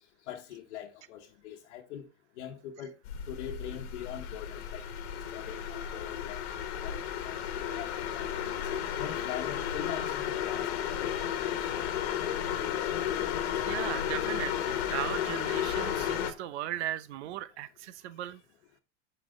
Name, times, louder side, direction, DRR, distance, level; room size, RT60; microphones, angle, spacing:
voice 1, 0.3-2.1 2.4-2.9 3.3-4.9 5.3-6.4 6.8-8.7 9.0-11.6 14.6-14.8 18.3-18.4, left 10 dB, 80° left, 1.1 m, -43 dB
sound 1, 3.0-16.3, left 9 dB, 60° left, 1.3 m, -33 dB
voice 2, 13.6-18.4, right 13 dB, 75° right, 0.8 m, -37 dB
8.4 x 5.7 x 3.7 m
supercardioid pair, 175°, 34 cm